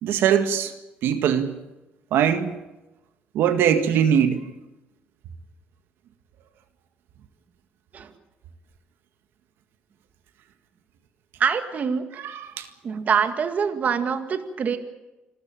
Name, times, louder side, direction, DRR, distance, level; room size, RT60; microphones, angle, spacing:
voice 1, 0.0-0.7 1.0-1.5 2.1-2.5 3.3-4.4 12.2-12.7, right 8 dB, 80° right, 9 dB, 1.8 m, -21 dB
voice 2, 11.4-12.1 12.8-14.8, right 6 dB, 45° right, 9 dB, 1.9 m, -24 dB
27.0 x 14.5 x 9.0 m, 1.0 s
cardioid pair, 125°, 4 cm